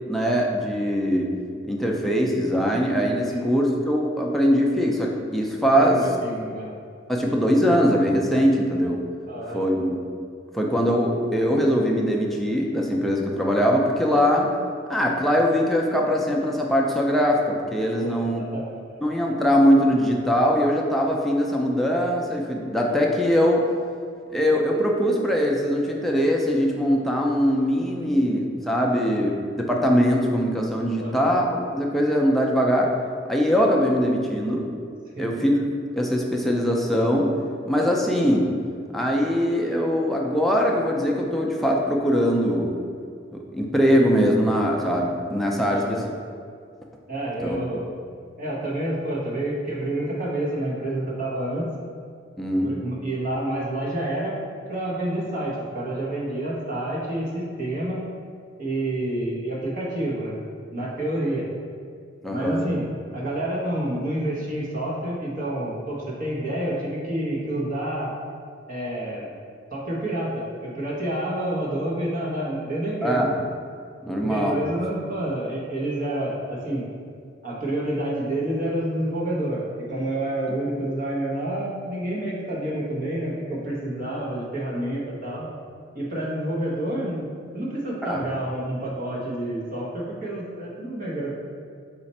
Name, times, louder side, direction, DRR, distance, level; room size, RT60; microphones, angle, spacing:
voice 1, 0.1-1.3 1.6-6.0 7.1-9.0 9.5-10.0 10.5-14.5 14.9-18.4 19.0-23.6 24.3-32.9 33.3-34.7 35.2-35.6 35.9-37.3 37.7-38.5 38.9-42.7 43.3-46.0 47.4-47.6 52.4-52.7 62.2-62.6 73.0-73.3 74.0-74.6 88.0-88.2, equal, ahead, -1 dB, 0.4 m, -22 dB
voice 2, 5.9-6.7 9.3-9.6 18.0-19.0 31.0-31.3 35.2-35.3 45.7-46.0 47.1-47.9 48.4-51.7 52.6-54.4 54.7-58.0 58.6-60.4 60.7-61.5 62.3-62.8 63.1-68.1 68.7-69.4 69.7-73.3 74.2-76.9 77.4-85.5 85.9-87.2 87.5-91.3, right 1 dB, 45° right, -5 dB, 0.9 m, -28 dB
4.2 x 2.4 x 4.1 m, 2.2 s
head